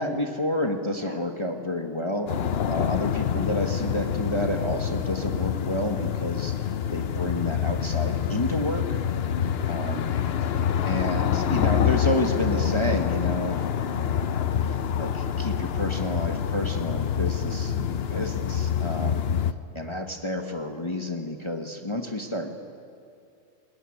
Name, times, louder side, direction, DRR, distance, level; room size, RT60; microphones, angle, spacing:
voice 1, 0.0-2.3 2.7-9.0 9.7-10.1 10.8-14.3 15.0-17.7 18.1-19.2 19.7-22.5, left 1 dB, 25° left, 3 dB, 1.3 m, -30 dB
voice 2, 0.9-1.3 3.2-3.5 6.9-7.0 9.8-10.7 17.7-18.1, right 2 dB, 30° right, 4 dB, 1.8 m, -46 dB
sound 1, 2.3-19.5, left 8 dB, 60° left, 0.9 m, -26 dB
21.5 x 18.0 x 9.8 m, 2.5 s
omnidirectional pair, 1.2 m